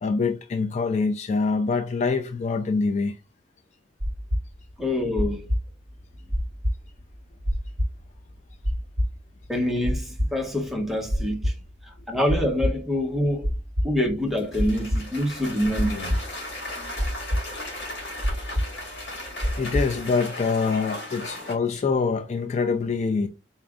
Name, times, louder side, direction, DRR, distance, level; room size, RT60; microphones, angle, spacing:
voice 1, 0.0-3.2 19.6-23.3, left 4 dB, 40° left, 0.3 m, -25 dB
sound 1, 4.0-20.1, equal, 50° right, 1.1 m, -27 dB
voice 2, 4.8-5.5 9.5-11.5 12.1-13.5 13.8-16.2, left 1 dB, ahead, 0.8 m, -26 dB
Cheering / Applause, 14.4-21.5, left 1 dB, 65° left, 2.1 m, -37 dB
4.2 x 2.4 x 3.5 m
head